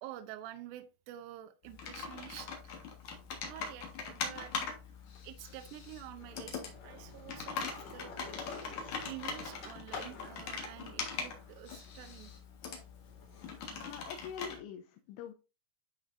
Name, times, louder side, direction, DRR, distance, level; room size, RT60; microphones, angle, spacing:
voice 1, 0.0-2.9 3.5-4.5 5.2-8.1 9.0-12.3, right 13 dB, 80° right, 2.5 m, -48 dB
Computer keyboard, 1.6-14.6, left 5 dB, 70° left, 1.8 m, -42 dB
Skateboard, 2.4-3.7 4.1-14.3, left 4 dB, 45° left, 2.7 m, -51 dB
voice 2, 13.8-15.3, left 8 dB, 90° left, 3.2 m, -44 dB
11.5 x 4.2 x 2.5 m
omnidirectional pair, 5.4 m